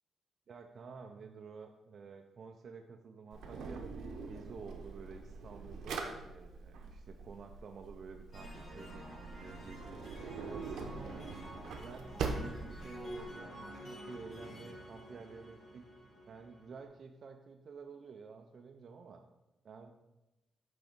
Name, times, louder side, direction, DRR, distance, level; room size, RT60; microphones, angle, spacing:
voice 1, 0.5-11.4 11.8-15.8 16.3-19.2 19.6-19.9, right 5 dB, 40° right, 4 dB, 0.3 m, -51 dB
Drawer open or close, 3.3-13.3, right 4 dB, 75° right, 0.7 m, -43 dB
sound 1, 8.3-16.8, equal, 40° left, 1.6 m, -49 dB
6.1 x 4.9 x 3.5 m, 1.0 s
wide cardioid pair, 180°, 0 cm